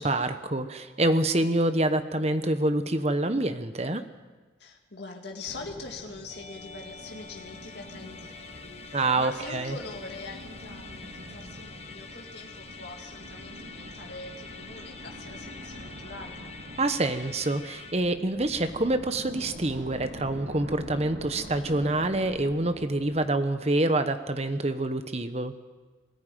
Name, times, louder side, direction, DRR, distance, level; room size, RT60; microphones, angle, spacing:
voice 1, 0.0-4.0 8.9-9.8 16.8-25.5, right 2 dB, 35° right, 10 dB, 1.1 m, -26 dB
voice 2, 4.6-16.4, left 3 dB, 65° left, 1 dB, 2.2 m, -43 dB
sound 1, 5.4-23.9, equal, 75° right, 2.6 m, -45 dB
Musical instrument, 6.3-17.9, left 4 dB, 35° left, 1.4 m, -46 dB
20.0 x 14.0 x 9.2 m, 1.3 s
head